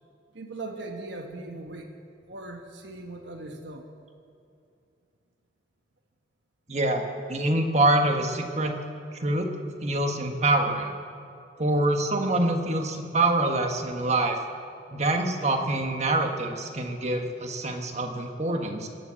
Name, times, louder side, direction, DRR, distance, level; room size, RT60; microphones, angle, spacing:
voice 1, 0.3-1.9 2.3-3.9, right 2 dB, 70° right, 3 dB, 1.3 m, -39 dB
voice 2, 6.7-7.0 7.3-8.7 9.2-9.5 9.8-10.9 11.6-14.4 14.9-18.9, right 2 dB, 35° right, 4 dB, 1.4 m, -25 dB
22.0 x 7.6 x 8.4 m, 2.5 s
head